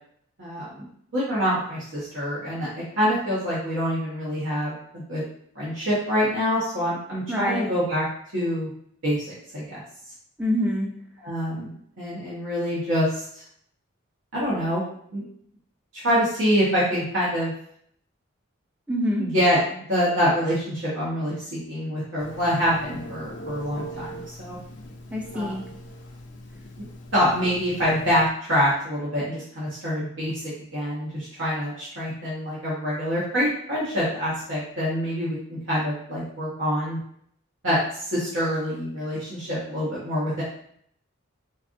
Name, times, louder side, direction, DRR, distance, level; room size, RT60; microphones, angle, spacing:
voice 1, 0.4-0.9 1.1-5.2 5.5-8.0 8.3-8.7 9.0-9.8 11.2-13.4 14.3-14.8 15.1-15.2 15.9-17.5 19.2-19.6 19.9-24.6 25.3-25.5 27.1-30.4 30.7-37.0 37.6-40.4, equal, 70° right, -9 dB, 1.2 m, -26 dB
voice 2, 7.3-7.7 10.4-10.9 18.9-19.2 25.1-25.6, equal, 5° right, -2 dB, 0.5 m, -25 dB
Telephone, 22.2-28.3, equal, 60° left, 0.5 m, -41 dB
4.5 x 2.5 x 2.6 m, 0.65 s
head